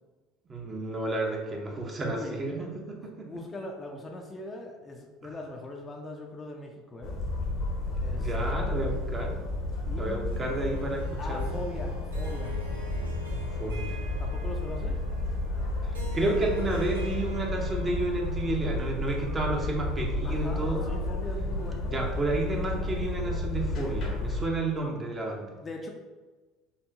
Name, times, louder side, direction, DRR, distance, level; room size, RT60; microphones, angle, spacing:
voice 1, 0.5-3.3 8.2-9.4 10.0-11.0 11.3-11.5 13.6-14.0 15.9-20.9 21.9-25.5, right 2 dB, 25° right, 0 dB, 1.0 m, -31 dB
voice 2, 2.0-2.4 3.0-7.2 8.0-8.3 9.9-10.8 11.2-12.7 14.2-15.0 20.2-22.1 25.6-25.9, left 2 dB, 30° left, 2 dB, 0.6 m, -41 dB
sound 1, 7.0-24.5, left 2 dB, 55° left, 0.8 m, -32 dB
Harp, 10.3-18.7, right 2 dB, 85° right, 0.6 m, -46 dB
4.5 x 2.9 x 2.9 m, 1.3 s
hypercardioid pair, 70°, 0 cm